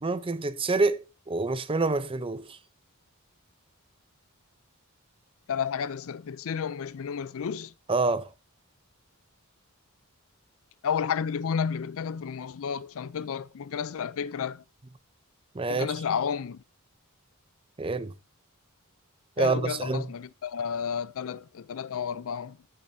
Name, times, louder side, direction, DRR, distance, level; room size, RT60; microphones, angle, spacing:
voice 1, 0.0-2.6 7.9-8.3 15.5-15.9 17.8-18.1 19.4-20.0, right 3 dB, 25° right, 0.6 m, -27 dB
voice 2, 5.5-7.7 10.8-14.6 15.7-16.6 19.4-22.6, left 7 dB, 65° left, 0.4 m, -31 dB
14.0 x 7.7 x 2.7 m
head